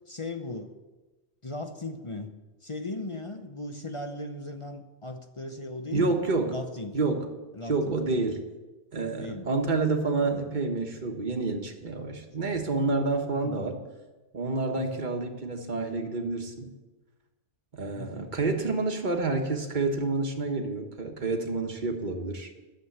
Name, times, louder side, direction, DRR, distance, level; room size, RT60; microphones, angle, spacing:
voice 1, 0.1-0.7 1.4-2.4 2.6-7.0 7.5-8.2 9.2-9.5 13.4-13.6 14.8-15.0 17.9-18.3, left 2 dB, 30° left, 6 dB, 0.7 m, -38 dB
voice 2, 5.9-6.6 6.9-7.3 7.7-8.4 8.9-13.8 14.3-16.7 17.7-22.5, right 3 dB, 40° right, 4 dB, 1.5 m, -28 dB
11.5 x 7.5 x 8.0 m, 1.2 s
omnidirectional pair, 1.2 m